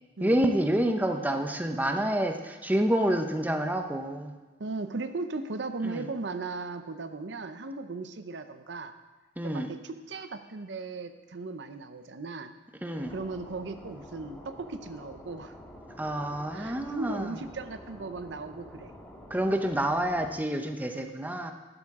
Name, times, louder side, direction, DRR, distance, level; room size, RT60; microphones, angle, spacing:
voice 1, 0.2-4.3 5.8-6.1 9.4-9.7 12.8-13.1 16.0-17.3 19.3-21.5, right 1 dB, 10° right, 5 dB, 0.6 m, -28 dB
voice 2, 4.6-8.9 9.4-12.5 13.1-15.5 16.5-18.9 19.3-19.4 20.9-21.1, right 3 dB, 65° right, 9 dB, 0.6 m, -37 dB
sound 1, 13.0-20.4, equal, 5° left, 1.5 m, -48 dB
12.0 x 12.0 x 3.6 m, 1.2 s
head